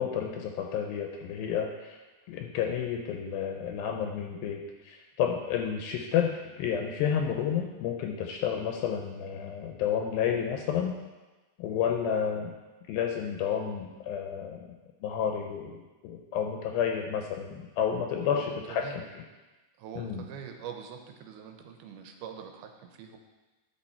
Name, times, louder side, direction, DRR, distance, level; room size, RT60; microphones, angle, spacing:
voice 1, 0.0-2.0 2.3-11.0 11.6-12.5 12.9-14.7 15.0-19.0 20.0-20.2, left 8 dB, 80° left, 3 dB, 2.2 m, -31 dB
voice 2, 18.1-19.1 19.8-23.2, right 7 dB, 80° right, 4 dB, 2.4 m, -44 dB
10.5 x 5.7 x 4.3 m, 1.2 s
omnidirectional pair, 4.7 m